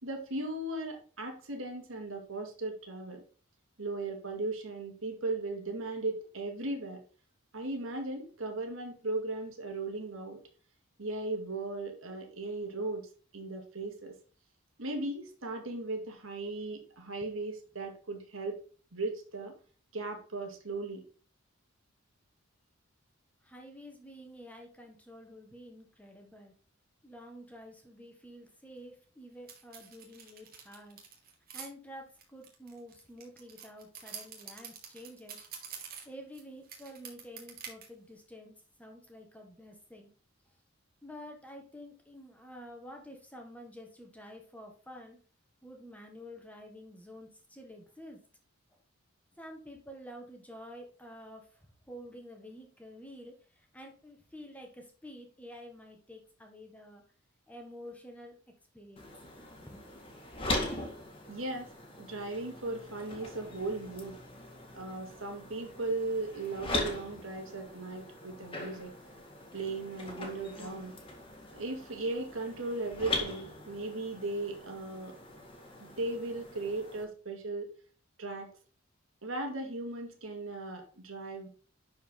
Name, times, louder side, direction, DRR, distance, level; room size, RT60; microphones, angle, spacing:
voice 1, 0.0-3.2 3.8-7.0 7.5-10.4 11.0-13.0 13.3-14.1 14.8-18.6 18.9-19.5 19.9-21.0 61.3-61.7 62.0-64.2 64.7-68.9 69.5-70.9 71.5-75.1 75.8-77.7 78.2-78.5 79.2-81.5, right 2 dB, 70° right, 3 dB, 2.3 m, -37 dB
voice 2, 23.4-26.5 27.0-31.0 31.5-35.4 36.0-38.5 38.8-40.1 41.0-45.2 45.6-48.2 48.7-48.8 49.3-57.0 57.5-58.3 58.7-59.1 59.6-59.9, equal, 5° left, 2 dB, 1.6 m, -49 dB
sound 1, 29.5-31.7 32.2-36.4 36.7-37.9, right 7 dB, 45° right, 2.2 m, -46 dB
sound 2, 59.0-77.0, left 2 dB, 25° left, 2.0 m, -41 dB
11.0 x 4.8 x 3.9 m, 0.40 s
head